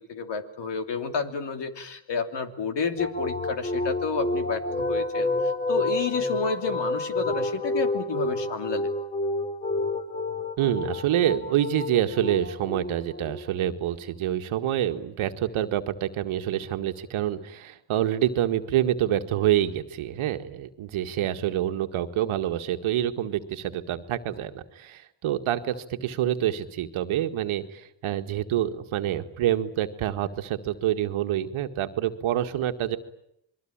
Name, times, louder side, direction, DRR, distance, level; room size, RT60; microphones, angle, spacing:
voice 1, 0.1-4.6 4.9-8.9, left 5 dB, 60° left, 7 dB, 3.0 m, -30 dB
sound 1, 3.0-13.7, left 2 dB, 15° left, 3.1 m, -29 dB
voice 2, 10.6-33.0, right 11 dB, 85° right, 8 dB, 1.9 m, -27 dB
27.0 x 22.0 x 8.9 m, 0.77 s
cardioid pair, 75°, 47 cm